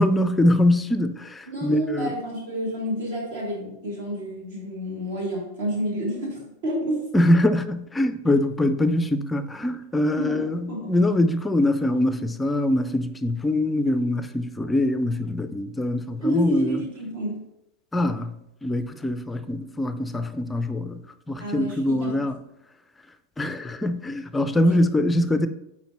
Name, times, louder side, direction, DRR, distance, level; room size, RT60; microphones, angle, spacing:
voice 1, 0.0-2.1 7.1-16.8 17.9-18.3 18.6-22.3 23.4-25.5, left 1 dB, 10° left, 0.5 m, -23 dB
voice 2, 1.4-7.0 10.1-11.0 16.2-17.5 21.4-22.3 24.6-24.7, equal, 55° right, 2.6 m, -29 dB
9.2 x 4.2 x 3.0 m
figure-of-eight pair, 90°, 0 cm